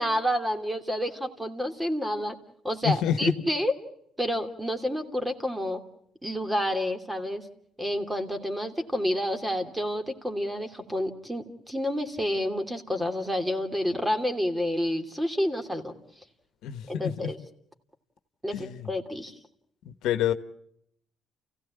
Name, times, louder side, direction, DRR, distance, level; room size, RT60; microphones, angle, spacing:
voice 1, 0.0-2.4 2.6-3.7 4.2-5.8 6.2-7.5 7.8-15.9 16.9-17.4 18.4-19.3, equal, 10° right, 2.8 m, -29 dB
voice 2, 2.8-3.3 16.6-17.3 18.5-18.9 19.9-20.3, left 10 dB, 80° left, 1.2 m, -28 dB
29.0 x 16.5 x 8.6 m
cardioid pair, 80°, 0 cm